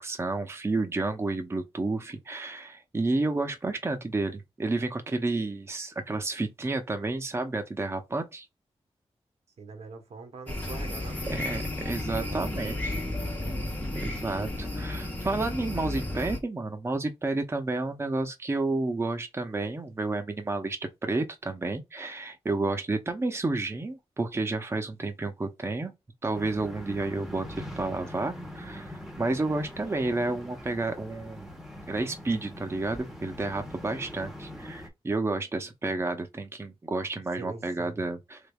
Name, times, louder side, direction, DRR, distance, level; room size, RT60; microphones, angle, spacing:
voice 1, 0.0-8.5 11.3-12.7 13.9-25.9 26.2-31.5 31.9-38.4, right 2 dB, 25° right, 0.6 m, -31 dB
voice 2, 9.6-11.6 12.0-13.7 37.4-38.1, right 4 dB, 80° right, 0.9 m, -45 dB
sound 1, 10.5-16.4, left 1 dB, 15° left, 1.1 m, -33 dB
sound 2, 26.3-34.9, left 1 dB, 5° right, 0.9 m, -42 dB
3.4 x 3.4 x 2.2 m
wide cardioid pair, 115°, 11 cm